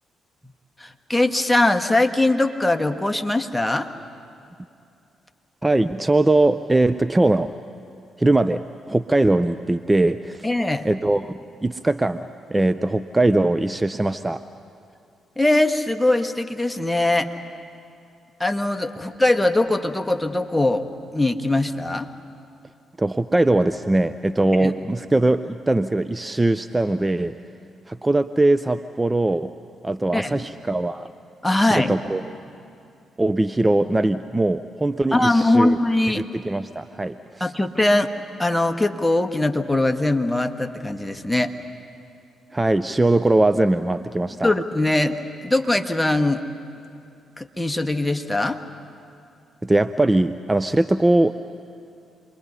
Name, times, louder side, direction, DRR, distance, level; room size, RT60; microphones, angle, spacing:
voice 1, 0.8-3.9 10.4-10.9 15.4-17.3 18.4-20.9 21.1-22.1 24.6-24.7 30.1-30.4 31.4-31.9 35.1-36.2 37.4-38.1 38.4-41.5 44.4-46.4 47.4-48.6, left 2 dB, 10° left, 6 dB, 1.5 m, -21 dB
voice 2, 5.6-7.5 8.2-10.5 10.8-14.4 23.0-27.3 27.9-29.5 29.8-31.1 31.6-32.2 33.2-35.8 36.2-37.5 42.5-44.5 49.6-51.3, right 2 dB, 20° right, 11 dB, 0.6 m, -21 dB
28.0 x 22.0 x 5.6 m, 2.6 s
hypercardioid pair, 45°, 0 cm